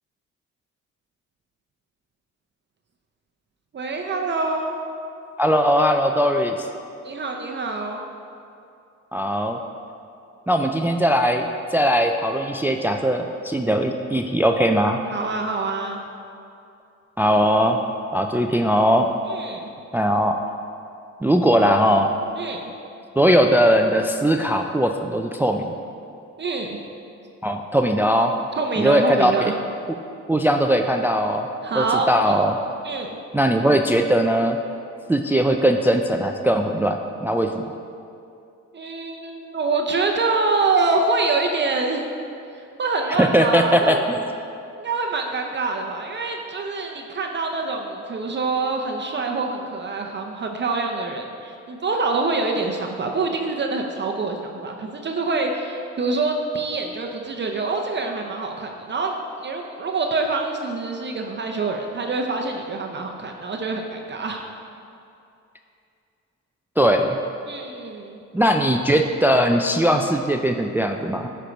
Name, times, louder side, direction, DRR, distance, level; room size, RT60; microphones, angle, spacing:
voice 1, 3.7-4.8 7.0-8.0 15.1-16.0 19.3-19.7 22.4-22.7 26.4-26.8 28.6-29.5 31.6-32.4 32.8-33.2 38.7-42.1 42.8-44.0 44.8-64.4 67.5-68.2, right 3 dB, 35° right, 2 dB, 0.7 m, -25 dB
voice 2, 5.4-6.7 9.1-9.6 10.5-15.0 17.2-17.8 18.1-19.1 19.9-20.4 21.2-22.1 23.2-25.7 27.4-28.3 28.8-29.5 30.3-31.5 31.8-32.6 33.3-34.6 35.1-37.6 43.2-44.2 66.8-67.2 68.3-71.3, equal, 5° right, 5 dB, 0.3 m, -20 dB
9.7 x 4.5 x 5.1 m, 2.6 s
cardioid pair, 90°, 30 cm